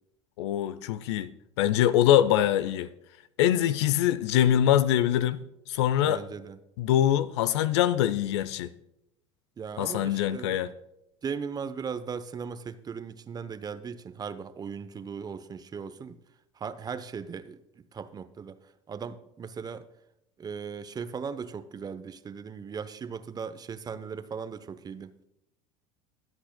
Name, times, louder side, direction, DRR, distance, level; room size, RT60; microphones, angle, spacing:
voice 1, 0.4-1.3 1.6-2.9 3.4-5.4 5.7-6.2 6.8-8.7 9.8-10.7, left 11 dB, 70° left, 0.6 m, -23 dB
voice 2, 6.0-6.6 9.6-10.6 11.2-16.2 16.6-18.6 18.9-19.9 20.4-25.1, right 6 dB, 25° right, 0.7 m, -38 dB
23.0 x 8.0 x 2.2 m
hypercardioid pair, 75°, 15 cm